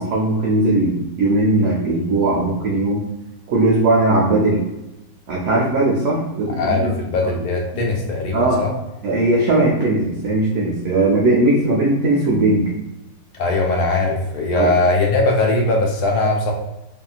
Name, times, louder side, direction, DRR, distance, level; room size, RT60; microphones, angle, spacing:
voice 1, 0.0-3.0 3.5-4.6 5.3-6.9 8.3-8.6 9.0-12.7 14.5-14.7, right 2 dB, 65° right, -4 dB, 0.8 m, -18 dB
voice 2, 6.6-8.7 13.3-16.5, left 2 dB, 80° left, 0 dB, 1.2 m, -20 dB
2.8 x 2.7 x 2.3 m, 0.95 s
omnidirectional pair, 1.7 m